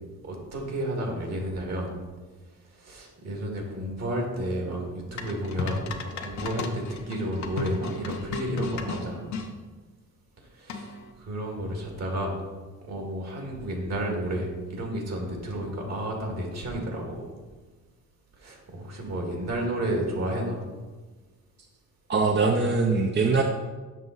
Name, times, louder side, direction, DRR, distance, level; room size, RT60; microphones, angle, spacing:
voice 1, 0.2-1.9 2.7-5.8 6.2-9.3 10.4-12.4 12.8-17.3 18.4-20.6, right 1 dB, 60° right, 1 dB, 2.2 m, -31 dB
sound 1, 5.2-9.5 10.7-11.1, left 4 dB, 70° left, 0.9 m, -34 dB
voice 2, 22.1-23.4, right 4 dB, 35° right, 3 dB, 0.7 m, -22 dB
7.5 x 6.0 x 4.0 m, 1.3 s
cardioid pair, 90°, 30 cm